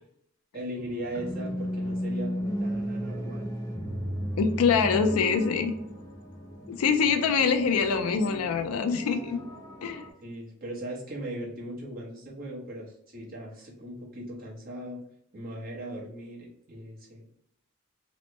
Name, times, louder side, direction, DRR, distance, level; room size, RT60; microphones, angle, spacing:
voice 1, 0.5-3.5 10.2-15.0 15.3-17.2, right 1 dB, 40° right, -5 dB, 1.0 m, -38 dB
sound 1, 0.8-10.1, equal, 15° left, 0.5 m, -35 dB
voice 2, 4.4-5.7 6.7-9.4 9.8-10.1, left 5 dB, 85° left, 7 dB, 0.4 m, -24 dB
3.0 x 2.1 x 3.0 m, 0.71 s
head